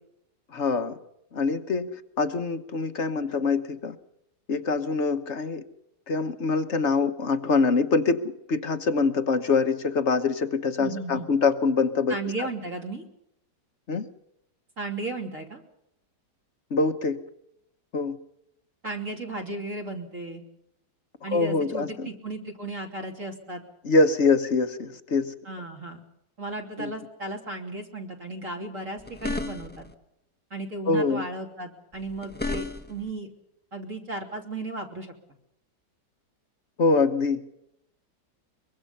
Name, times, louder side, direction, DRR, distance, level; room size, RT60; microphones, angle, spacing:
voice 1, 0.5-1.0 1.3-1.9 2.2-4.0 4.5-5.6 6.1-8.2 8.5-12.5 13.9-14.1 16.7-17.2 17.9-18.2 21.3-22.1 23.8-25.3 26.8-26.9 30.9-31.2 36.8-37.5, left 4 dB, 45° left, 9 dB, 1.3 m, -24 dB
voice 2, 10.8-11.3 12.1-13.0 14.8-15.6 18.8-20.4 21.2-23.6 25.4-26.0 26.4-29.9 30.5-33.3 33.7-35.1, right 2 dB, 45° right, 1 dB, 3.4 m, -35 dB
sound 1, 29.0-29.9 31.9-33.1, left 2 dB, 5° left, 1.0 m, -33 dB
23.5 x 23.0 x 5.5 m, 0.81 s
omnidirectional pair, 1.9 m